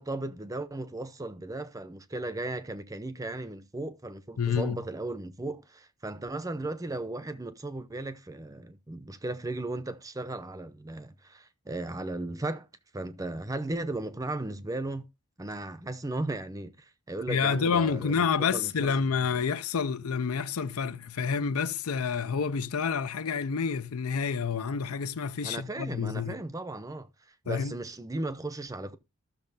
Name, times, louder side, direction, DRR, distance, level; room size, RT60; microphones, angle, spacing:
voice 1, 0.0-12.7 12.9-15.1 15.4-19.3 25.4-27.1 27.4-29.0, right 2 dB, 15° right, 0.6 m, -36 dB
voice 2, 4.4-4.8 17.3-26.4 27.5-27.8, left 6 dB, 75° left, 0.5 m, -28 dB
14.5 x 6.4 x 2.6 m
head